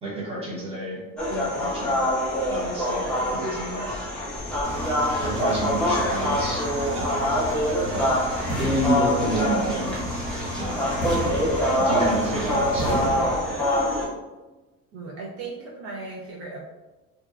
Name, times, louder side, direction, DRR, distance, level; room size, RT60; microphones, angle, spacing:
voice 1, 0.0-1.0 1.3-2.0 2.5-3.9 5.2-6.6 6.9-7.2 7.8-8.1 8.6-10.0 10.6-10.9 11.8-13.0, right 1 dB, 20° right, -6 dB, 0.7 m, -29 dB
sound 1, 1.2-14.1, left 1 dB, 5° left, 0.4 m, -25 dB
Engine, 4.6-13.1, equal, 85° right, 0.8 m, -33 dB
sound 2, 8.5-9.7 11.0-12.3 12.8-13.9, right 1 dB, 55° left, 0.6 m, -33 dB
voice 2, 14.9-16.6, right 3 dB, 55° right, -5 dB, 0.5 m, -37 dB
2.8 x 2.1 x 2.3 m, 1.1 s
cardioid pair, 175°, 29 cm